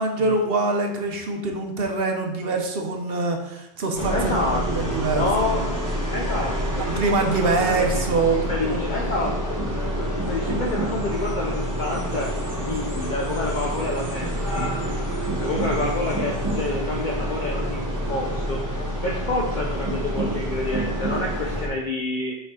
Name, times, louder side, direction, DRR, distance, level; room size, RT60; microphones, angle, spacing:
voice 1, 0.0-4.4 4.7-5.2 6.9-8.9, right 3 dB, 70° right, 3 dB, 1.1 m, -24 dB
sound 1, 3.9-21.7, equal, 20° right, 1.1 m, -27 dB
voice 2, 4.1-5.6 6.1-6.9 7.2-8.0 8.3-9.4 10.0-12.3 12.6-14.7 15.4-17.8 18.1-18.8 19.0-22.4, left 2 dB, 55° left, -1 dB, 0.8 m, -28 dB
6.9 x 4.4 x 3.7 m, 0.86 s
omnidirectional pair, 1.0 m